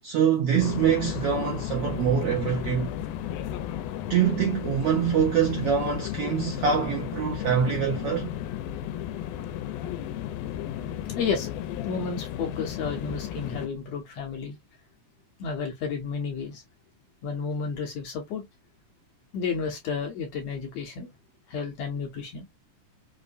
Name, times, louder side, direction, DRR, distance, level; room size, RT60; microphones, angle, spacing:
voice 1, 0.0-2.9 4.1-8.3, right 7 dB, 70° right, 1.4 m, -24 dB
sound 1, 0.6-13.7, left 11 dB, 85° left, 2.1 m, -34 dB
voice 2, 11.2-11.5 11.8-14.6 15.4-16.6 17.2-18.4 19.3-21.1 21.5-22.5, left 5 dB, 70° left, 1.6 m, -31 dB
5.3 x 2.1 x 2.4 m
omnidirectional pair, 3.6 m